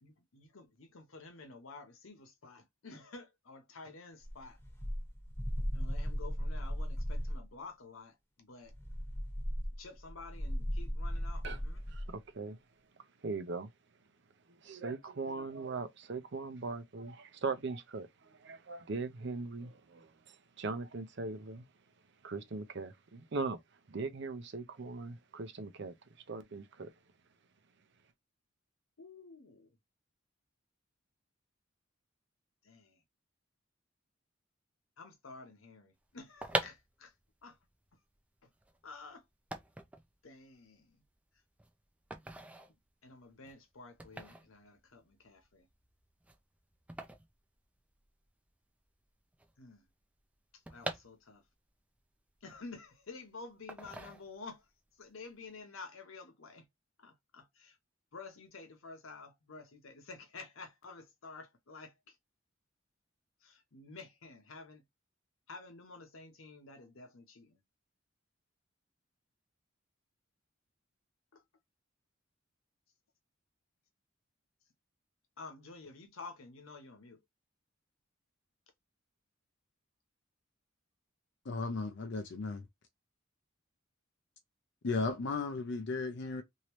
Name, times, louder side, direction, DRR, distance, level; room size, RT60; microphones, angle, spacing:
voice 1, 0.0-4.6 5.7-8.7 9.8-11.8 29.0-29.7 32.6-33.0 35.0-37.1 37.4-37.6 38.8-39.2 40.2-41.0 43.0-45.7 49.6-49.9 50.7-51.4 52.4-54.6 55.0-56.7 57.0-57.8 58.1-62.1 63.4-64.8 65.5-67.6 71.3-71.4 75.4-77.2, left 4 dB, 85° left, 0.9 m, -51 dB
sound 1, 4.3-7.5 8.7-12.1, equal, 10° left, 0.9 m, -36 dB
voice 2, 11.9-12.6 13.2-13.7 14.6-21.7 22.2-23.6 23.9-25.9 26.3-26.9, right 3 dB, 60° right, 0.6 m, -40 dB
sound 2, 36.2-48.3 48.6-48.7 48.8-51.7 52.1-53.1 53.7-54.7 55.0-55.3, right 1 dB, 5° right, 0.4 m, -43 dB
voice 3, 81.5-82.6 84.8-86.4, left 3 dB, 60° left, 0.5 m, -35 dB
3.0 x 2.7 x 3.0 m
head